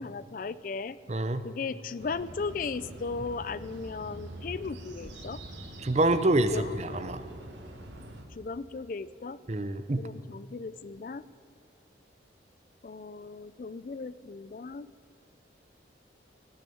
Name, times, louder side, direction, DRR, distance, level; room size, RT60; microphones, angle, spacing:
voice 1, 0.0-1.0 1.4-5.4 6.5-7.1 8.3-9.4 10.0-11.2 12.8-14.9, left 4 dB, 45° left, 17 dB, 0.4 m, -37 dB
voice 2, 1.1-1.4 5.8-7.2 9.5-10.1, right 1 dB, 35° right, 11 dB, 0.6 m, -26 dB
sound 1, 2.0-8.2, right 1 dB, 85° right, 1.6 m, -44 dB
18.5 x 6.5 x 8.6 m, 2.4 s
head